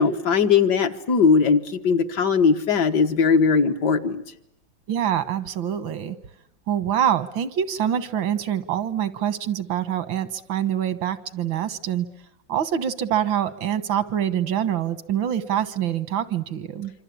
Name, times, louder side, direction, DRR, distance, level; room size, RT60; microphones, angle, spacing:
voice 1, 0.0-4.2, left 5 dB, 60° left, 6 dB, 2.0 m, -19 dB
voice 2, 4.9-6.2 6.7-12.1 12.5-16.9, right 10 dB, 90° right, 13 dB, 2.1 m, -25 dB
26.0 x 26.0 x 8.5 m, 0.78 s
omnidirectional pair, 2.1 m